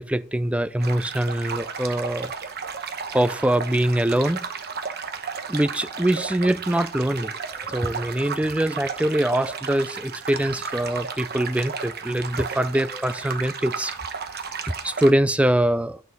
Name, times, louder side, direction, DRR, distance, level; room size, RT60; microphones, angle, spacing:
voice 1, 0.0-2.3 3.1-4.4 5.5-7.3 7.6-13.9 14.8-16.0, right 1 dB, 5° right, 0.4 m, -23 dB
sound 1, 0.8-15.1, right 6 dB, 50° right, 1.0 m, -34 dB
9.5 x 6.2 x 5.3 m
head